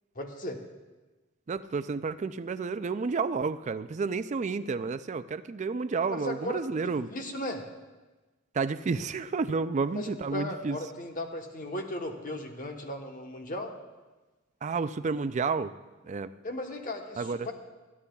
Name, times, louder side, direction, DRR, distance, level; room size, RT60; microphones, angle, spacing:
voice 1, 0.1-0.6 6.0-7.6 9.9-13.7 16.4-17.5, left 1 dB, 40° left, 3 dB, 1.1 m, -36 dB
voice 2, 1.5-7.1 8.5-10.8 14.6-15.7 16.0-16.3 17.2-17.5, right 4 dB, 35° right, 13 dB, 0.3 m, -31 dB
26.0 x 9.8 x 2.3 m, 1.2 s
head